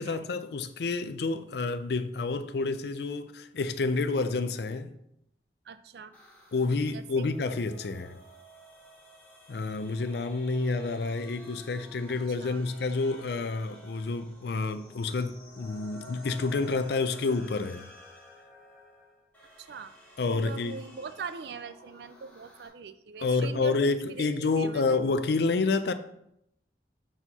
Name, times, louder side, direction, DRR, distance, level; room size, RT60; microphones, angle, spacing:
voice 1, 0.0-4.9 6.5-8.2 9.5-17.9 20.2-20.7 23.2-25.9, left 3 dB, 65° left, 0.4 m, -29 dB
voice 2, 5.7-6.1 6.9-7.3 12.3-12.6 19.6-19.9 20.3-25.0, right 6 dB, 65° right, 0.4 m, -42 dB
sound 1, 6.1-22.7, left 1 dB, 10° left, 1.5 m, -52 dB
4.4 x 4.4 x 5.4 m
head